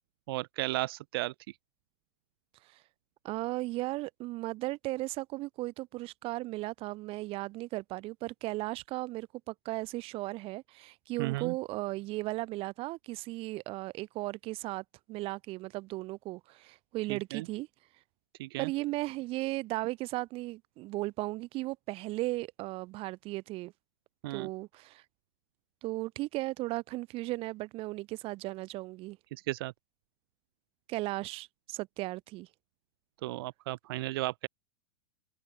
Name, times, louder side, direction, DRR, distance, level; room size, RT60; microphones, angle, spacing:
voice 1, 0.3-1.3 11.2-11.5 17.1-17.4 18.4-18.7 24.2-24.5 29.3-29.7 33.2-34.5, right 19 dB, 55° right, 1.3 m, -34 dB
voice 2, 3.2-17.7 18.6-23.7 24.3-25.0 25.8-29.2 30.9-32.5, right 19 dB, 40° right, 1.7 m, -36 dB
figure-of-eight pair, 95°, 15 cm